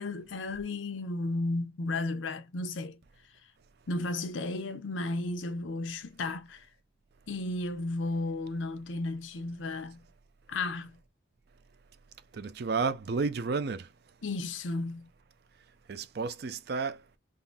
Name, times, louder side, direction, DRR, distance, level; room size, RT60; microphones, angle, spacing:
voice 1, 0.0-3.0 3.9-6.6 7.3-10.0 10.5-11.0 14.2-15.1, left 2 dB, 85° left, 0.7 m, -34 dB
voice 2, 12.3-13.9 15.9-17.0, right 4 dB, 55° right, 0.4 m, -31 dB
3.6 x 2.6 x 2.2 m
head